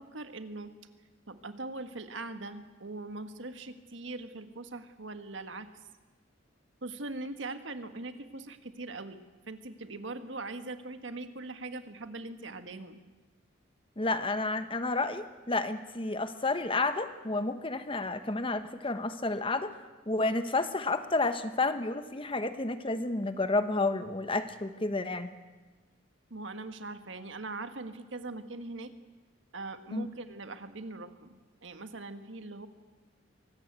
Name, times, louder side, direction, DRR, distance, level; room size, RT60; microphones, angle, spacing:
voice 1, 0.1-0.7 1.3-5.7 6.8-9.2 9.5-13.0 26.3-28.9 29.5-32.7, right 2 dB, 75° right, 8 dB, 1.7 m, -41 dB
voice 2, 14.0-19.8 20.1-25.3 29.9-30.1, left 3 dB, 30° left, 10 dB, 1.2 m, -30 dB
24.5 x 19.0 x 8.3 m, 1.3 s
head